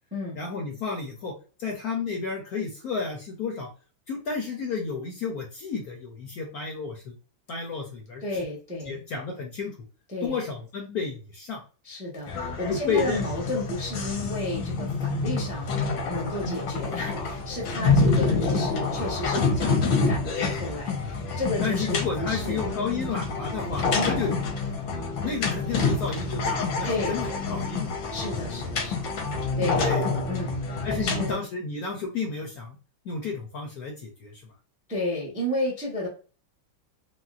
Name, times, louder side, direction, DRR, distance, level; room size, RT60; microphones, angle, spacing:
voice 1, 0.3-1.3 1.6-3.7 4.1-7.1 7.5-8.4 8.9-9.7 10.2-11.6 12.7-13.3 16.4-16.6 17.8-18.1 21.6-24.4 24.7-24.8 25.2-27.9 29.7-30.1 30.8-32.8 33.0-34.4, left 4 dB, 70° left, 0 dB, 0.9 m, -32 dB
voice 2, 8.2-9.0 10.1-10.4 11.8-15.8 16.1-22.6 23.0-23.2 23.9-24.2 26.8-27.4 28.1-29.8 30.3-30.6 30.9-31.4 34.9-36.1, left 1 dB, 10° right, -3 dB, 0.4 m, -32 dB
sound 1, 12.3-31.4, left 4 dB, 85° left, 1.6 m, -27 dB
4.0 x 2.1 x 2.4 m, 0.37 s
omnidirectional pair, 2.1 m